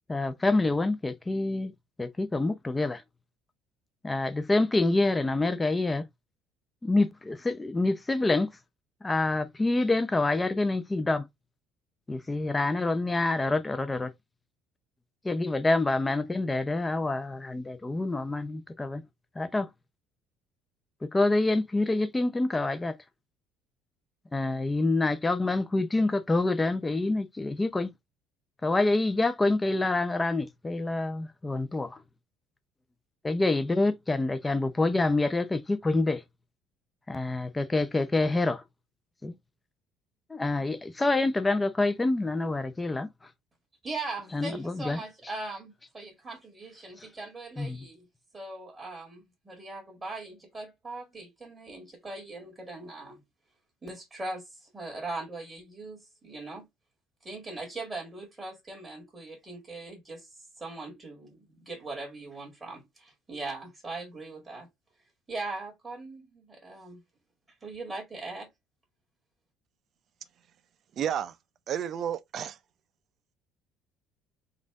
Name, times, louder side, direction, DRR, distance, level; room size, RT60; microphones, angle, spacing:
voice 1, 0.1-1.7 2.0-3.0 4.0-6.0 6.8-8.5 9.0-11.2 12.1-14.1 15.2-19.0 19.4-19.7 21.0-22.9 24.3-27.9 28.6-32.0 33.2-36.2 37.1-38.6 39.2-39.3 40.3-43.1 44.3-45.0 47.6-47.9, left 2 dB, 15° left, 0.7 m, -27 dB
voice 2, 43.8-48.1 48.3-53.2 53.8-56.6 57.2-60.3 60.6-64.7 65.3-67.0 67.6-68.5, right 2 dB, 20° right, 1.9 m, -40 dB
voice 3, 71.0-71.3 71.7-72.6, right 9 dB, 50° right, 0.5 m, -31 dB
4.2 x 2.6 x 3.5 m
cardioid pair, 120°, 0 cm